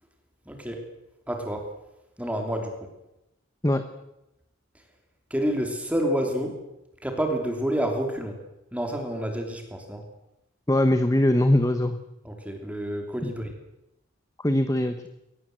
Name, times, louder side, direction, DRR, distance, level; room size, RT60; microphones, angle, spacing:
voice 1, 0.5-0.8 1.3-1.7 2.2-2.7 5.3-6.6 7.0-8.4 8.7-10.0 12.2-13.5, equal, 5° right, 3 dB, 3.1 m, -28 dB
voice 2, 10.7-12.0 13.2-13.3 14.4-15.1, left 1 dB, 15° left, 9 dB, 1.1 m, -21 dB
22.0 x 19.0 x 7.8 m, 0.89 s
head